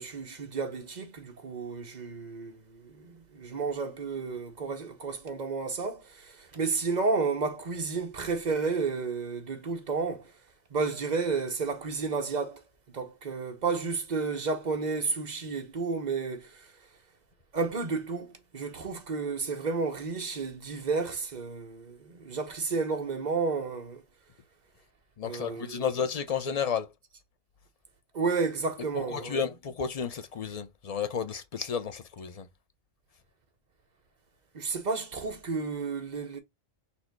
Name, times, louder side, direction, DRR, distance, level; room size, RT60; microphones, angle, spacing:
voice 1, 0.0-10.3 10.7-12.6 12.9-16.7 17.5-24.0 25.2-25.8 28.1-29.4 34.5-36.4, right 4 dB, 45° right, 1.0 m, -32 dB
voice 2, 25.2-26.9 28.9-32.5, left 6 dB, 45° left, 0.6 m, -32 dB
4.3 x 2.7 x 4.5 m
omnidirectional pair, 1.1 m